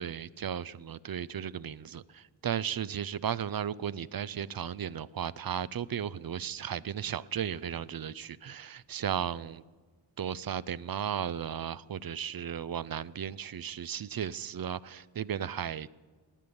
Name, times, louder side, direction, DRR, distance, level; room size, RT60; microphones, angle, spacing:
voice 1, 0.0-9.6 10.2-15.9, right 9 dB, 50° right, 19 dB, 0.5 m, -35 dB
18.0 x 9.8 x 7.0 m, 1.4 s
wide cardioid pair, 85°, 47 cm